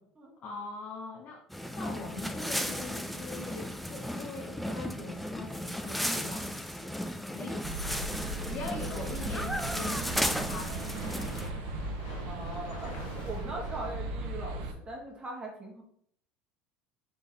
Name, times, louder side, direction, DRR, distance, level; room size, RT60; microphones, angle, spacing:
voice 1, 0.4-1.4 1.8-7.6 8.5-10.9, left 4 dB, 50° left, 0 dB, 0.8 m, -42 dB
sound 1, 1.5-11.5, equal, ahead, 0.4 m, -35 dB
sound 2, 7.6-14.7, right 3 dB, 70° right, 0.7 m, -37 dB
sound 3, 10.6-14.5, left 3 dB, 85° left, 1.2 m, -48 dB
voice 2, 12.2-12.9 13.2-15.8, right 2 dB, 25° right, -1 dB, 1.2 m, -40 dB
4.2 x 3.4 x 3.4 m, 0.67 s
supercardioid pair, 105°, 4 cm